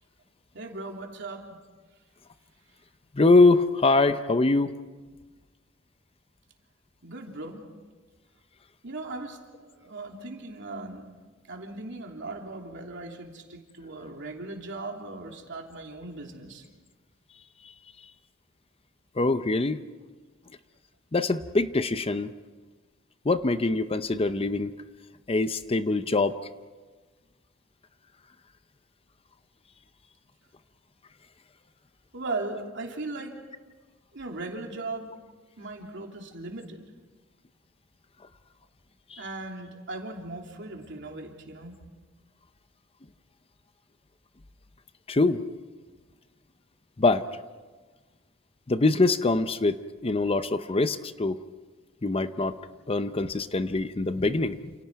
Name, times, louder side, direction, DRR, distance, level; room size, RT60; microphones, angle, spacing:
voice 1, 0.5-1.6 7.0-7.6 8.8-11.1 11.5-16.6 32.1-33.4 34.1-35.1 35.6-36.8 39.2-41.8, right 2 dB, 60° right, 1 dB, 3.1 m, -38 dB
voice 2, 3.2-4.7 19.2-19.8 21.1-22.3 23.3-24.7 25.3-26.4 39.1-39.2 45.1-45.4 47.0-47.2 48.7-49.8 50.0-51.4 52.0-52.6 52.9-54.7, left 3 dB, 30° left, 11 dB, 0.7 m, -23 dB
29.0 x 28.0 x 4.7 m, 1.3 s
head